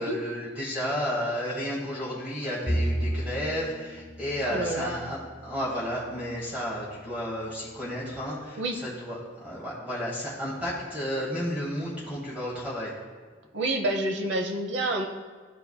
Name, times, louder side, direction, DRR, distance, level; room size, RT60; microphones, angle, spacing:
voice 1, 0.0-12.9, equal, 10° right, -7 dB, 1.3 m, -32 dB
Bowed string instrument, 2.7-6.2, equal, 20° left, 0.6 m, -33 dB
voice 2, 4.4-5.0 8.6-8.8 13.5-15.1, right 1 dB, 65° right, 4 dB, 0.8 m, -28 dB
12.5 x 4.5 x 2.2 m, 1.5 s
head